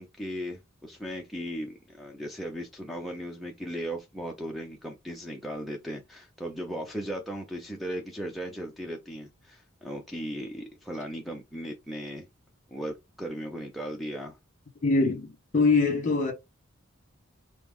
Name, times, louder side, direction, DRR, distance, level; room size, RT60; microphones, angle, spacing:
voice 1, 0.0-12.3 12.7-14.4, equal, ahead, 0.5 m, -37 dB
voice 2, 14.8-16.3, left 3 dB, 40° left, 1.2 m, -23 dB
4.6 x 2.0 x 3.5 m
head